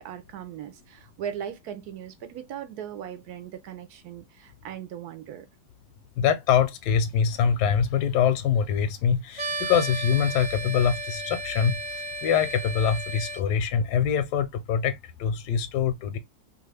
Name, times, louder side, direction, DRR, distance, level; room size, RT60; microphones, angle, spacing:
voice 1, 0.0-5.5, right 9 dB, 75° right, 1.0 m, -38 dB
voice 2, 6.2-16.2, left 7 dB, 80° left, 1.2 m, -24 dB
sound 1, 9.3-13.4, right 1 dB, 55° right, 0.4 m, -34 dB
2.9 x 2.4 x 3.2 m
omnidirectional pair, 1.8 m